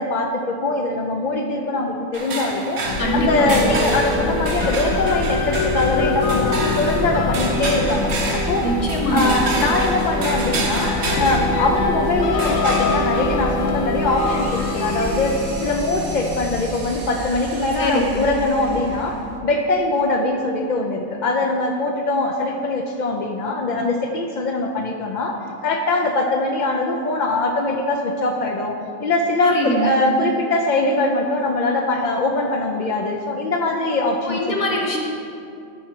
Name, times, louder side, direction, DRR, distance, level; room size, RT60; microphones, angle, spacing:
voice 1, 0.0-8.7 9.1-25.4 25.6-34.6, left 2 dB, 60° left, 1 dB, 0.4 m, -22 dB
sound 1, 2.1-15.4, right 3 dB, 75° right, 1.5 m, -30 dB
sound 2, 2.8-19.4, left 3 dB, 80° left, 1.2 m, -24 dB
voice 2, 3.0-3.7 8.6-9.4 17.8-18.2 29.4-30.0 34.2-35.0, equal, 25° left, 0 dB, 1.1 m, -23 dB
Engine, 13.7-19.4, right 2 dB, 40° right, 0.8 m, -39 dB
13.0 x 4.8 x 4.4 m, 2.5 s
omnidirectional pair, 1.5 m